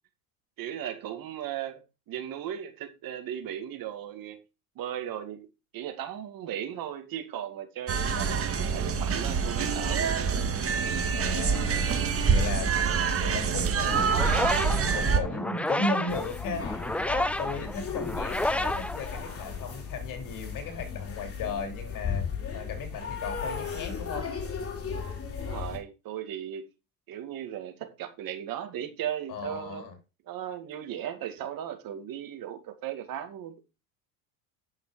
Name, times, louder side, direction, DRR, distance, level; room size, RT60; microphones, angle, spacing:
voice 1, 0.6-4.4 4.8-5.5 5.7-10.1 25.4-26.7 27.1-29.9 30.3-33.6, right 10 dB, 50° right, 2.3 m, -37 dB
voice 2, 7.9-8.4 11.1-11.8 12.3-12.7 13.2-22.2 22.5-24.3 29.3-29.9, left 3 dB, 50° left, 2.9 m, -36 dB
sound 1, 7.9-15.2, right 5 dB, 30° right, 1.7 m, -26 dB
sound 2, 13.9-19.7, left 1 dB, 5° left, 0.5 m, -31 dB
sound 3, 16.1-25.8, left 6 dB, 30° left, 2.9 m, -36 dB
9.4 x 6.4 x 5.0 m
supercardioid pair, 90°, 42 cm